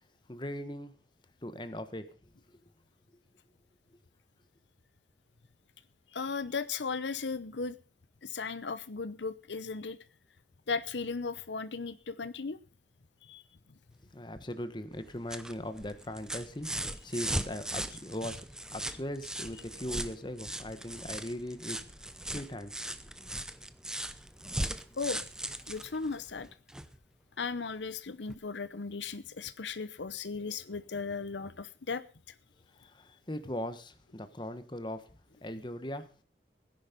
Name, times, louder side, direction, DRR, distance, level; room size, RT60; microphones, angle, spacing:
voice 1, 0.3-0.9 1.4-2.1 14.1-18.5 18.7-21.8 22.3-23.0 32.8-35.1 35.4-36.2, left 1 dB, 25° left, 10 dB, 1.4 m, -39 dB
voice 2, 6.1-7.8 8.2-10.0 10.7-12.6 13.2-13.4 25.0-25.2 25.7-26.5 27.4-32.0, left 4 dB, 85° left, 14 dB, 0.8 m, -36 dB
sound 1, 14.9-27.0 28.3-28.4, right 1 dB, 5° right, 0.7 m, -39 dB
17.0 x 10.5 x 5.4 m, 0.37 s
head